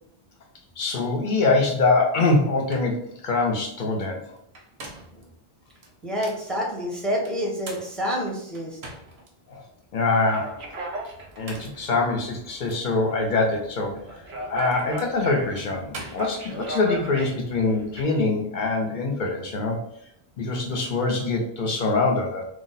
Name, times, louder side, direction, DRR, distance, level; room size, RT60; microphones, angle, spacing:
voice 1, 0.8-4.4 9.5-9.6 9.9-10.6 11.4-14.0 14.5-19.8 20.4-22.4, left 3 dB, 55° left, 1 dB, 0.7 m, -24 dB
sound 1, 2.3-2.4 2.7-3.0 4.4-5.2 5.8-6.5 7.2-9.3 9.8-9.9 11.2-11.9 12.7-12.8 14.0-16.8, right 2 dB, 80° right, 1.0 m, -43 dB
voice 2, 6.0-8.8, equal, ahead, -2 dB, 0.6 m, -28 dB
sound 2, 10.2-18.0, right 1 dB, 55° right, 0.7 m, -38 dB
2.7 x 2.0 x 3.9 m, 0.71 s
omnidirectional pair, 1.1 m